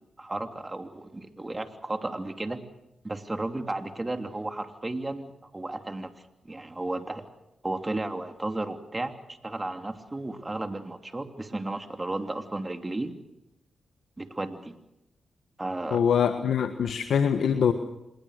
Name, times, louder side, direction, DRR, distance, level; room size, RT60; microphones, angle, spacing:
voice 1, 0.2-2.6 3.0-6.1 6.4-7.2 7.6-9.2 9.4-13.1 14.2-14.8 15.6-16.0, right 2 dB, 25° right, 6 dB, 3.1 m, -33 dB
voice 2, 15.9-17.7, left 7 dB, 80° left, 8 dB, 1.3 m, -23 dB
26.5 x 21.5 x 6.6 m, 0.88 s
supercardioid pair, 50°, 0 cm